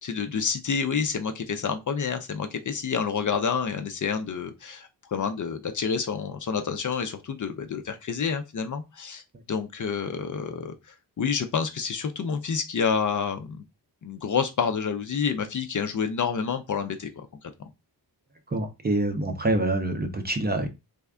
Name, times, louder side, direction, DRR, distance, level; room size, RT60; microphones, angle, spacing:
voice 1, 0.0-9.2 9.5-10.7 11.2-13.6 14.0-17.3, left 6 dB, 50° left, 0.5 m, -28 dB
voice 2, 18.5-20.7, right 2 dB, 25° right, 0.5 m, -26 dB
3.4 x 2.2 x 3.4 m
wide cardioid pair, 145°, 42 cm